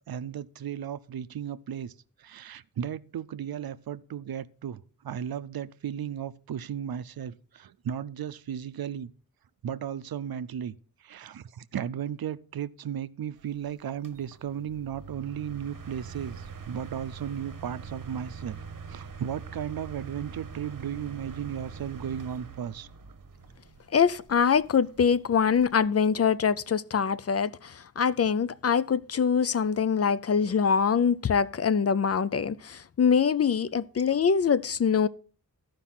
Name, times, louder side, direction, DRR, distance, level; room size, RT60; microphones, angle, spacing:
voice 1, 0.1-1.9 2.2-9.1 9.6-10.7 11.0-18.6 18.9-22.9, right 9 dB, 85° right, 0.5 m, -35 dB
sound 1, 13.4-25.9, right 5 dB, 65° right, 1.0 m, -44 dB
voice 2, 23.9-35.1, left 6 dB, 45° left, 0.4 m, -24 dB
13.5 x 5.2 x 5.7 m
wide cardioid pair, 95°, 35 cm